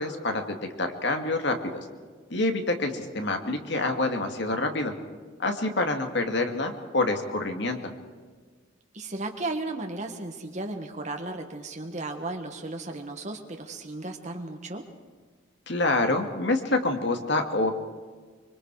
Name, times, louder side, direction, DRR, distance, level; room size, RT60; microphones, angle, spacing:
voice 1, 0.0-1.8 2.3-4.9 5.4-7.8 15.7-17.7, left 2 dB, 60° left, 5 dB, 2.3 m, -27 dB
voice 2, 8.9-14.9, right 2 dB, 35° right, 4 dB, 1.4 m, -35 dB
25.0 x 24.5 x 4.8 m, 1.5 s
head